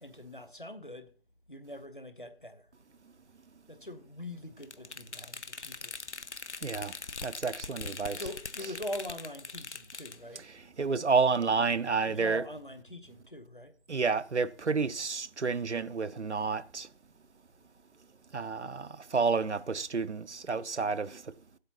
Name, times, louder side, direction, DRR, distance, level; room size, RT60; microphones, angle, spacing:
voice 1, 0.0-1.1 1.5-2.7 3.7-6.0 8.1-10.4 12.0-13.7, left 1 dB, 50° left, 0.9 m, -42 dB
sound 1, 4.6-10.2, left 4 dB, 80° left, 0.7 m, -42 dB
voice 2, 6.6-8.3 8.6-8.8 10.3-12.4 13.1-13.2 13.9-16.9 18.3-21.3, right 5 dB, 85° right, 0.6 m, -30 dB
15.5 x 7.9 x 2.8 m
figure-of-eight pair, 175°, 34 cm